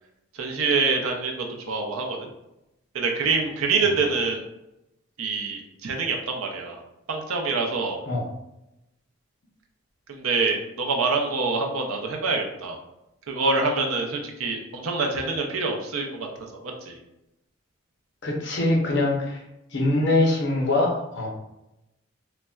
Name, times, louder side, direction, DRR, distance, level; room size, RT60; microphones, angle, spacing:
voice 1, 0.3-2.3 2.9-4.4 5.2-6.8 7.1-8.0 10.1-12.8 13.3-17.0, right 4 dB, 90° right, 1 dB, 0.6 m, -26 dB
voice 2, 18.2-19.4 19.7-21.3, left 2 dB, 55° left, -1 dB, 0.7 m, -23 dB
3.9 x 2.1 x 2.3 m, 0.90 s
head